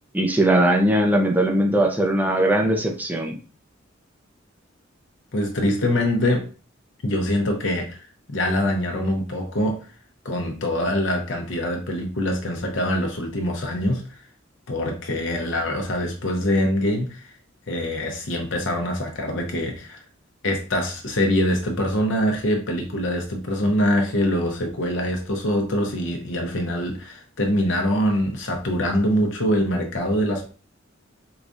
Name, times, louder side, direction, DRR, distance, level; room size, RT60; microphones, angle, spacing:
voice 1, 0.1-3.4, right 1 dB, 10° right, 2 dB, 0.5 m, -20 dB
voice 2, 5.3-6.4 7.0-8.0 8.3-9.8 10.2-14.0 14.7-17.3 17.7-20.0 20.4-30.5, left 1 dB, 65° left, 2 dB, 0.7 m, -24 dB
4.7 x 2.3 x 2.6 m, 0.38 s
head